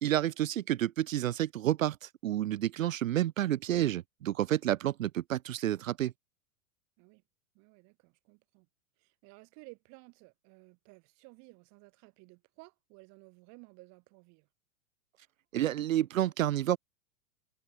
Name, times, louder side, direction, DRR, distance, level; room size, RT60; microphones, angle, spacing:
voice 1, 0.0-6.1 15.5-16.8, right 12 dB, 65° right, 0.6 m, -30 dB
voice 2, 7.5-8.7 9.0-14.5, right 30 dB, 40° right, 2.0 m, -56 dB
figure-of-eight pair, 95°, 43 cm